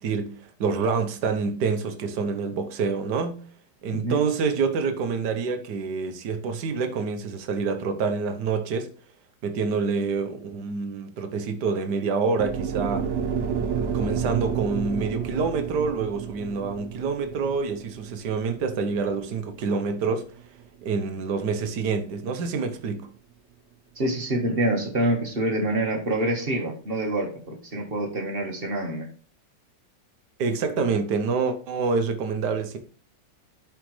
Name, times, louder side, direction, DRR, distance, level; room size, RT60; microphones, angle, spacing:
voice 1, 0.0-3.4 3.8-8.9 9.4-13.1 13.9-20.3 20.8-23.1 30.4-32.8, right 5 dB, 70° right, 1.5 m, -27 dB
sound 1, 12.4-20.6, right 7 dB, 50° right, 0.9 m, -31 dB
voice 2, 24.0-29.1, right 1 dB, 30° right, 1.7 m, -26 dB
11.5 x 5.0 x 3.3 m
omnidirectional pair, 1.9 m